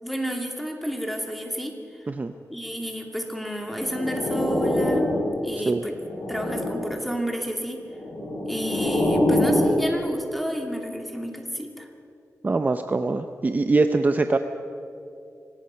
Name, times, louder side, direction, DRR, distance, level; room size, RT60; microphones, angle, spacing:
voice 1, 0.0-2.1 2.5-5.1 5.4-6.0 6.3-7.8 8.4-11.9, equal, ahead, 3 dB, 2.5 m, -31 dB
sound 1, 3.7-5.5 5.9-7.0 7.9-9.8, left 1 dB, 55° left, 6.5 m, -25 dB
voice 2, 12.4-14.4, right 3 dB, 30° right, 8 dB, 0.7 m, -23 dB
25.5 x 18.0 x 5.8 m, 2.7 s
wide cardioid pair, 115°, 6 cm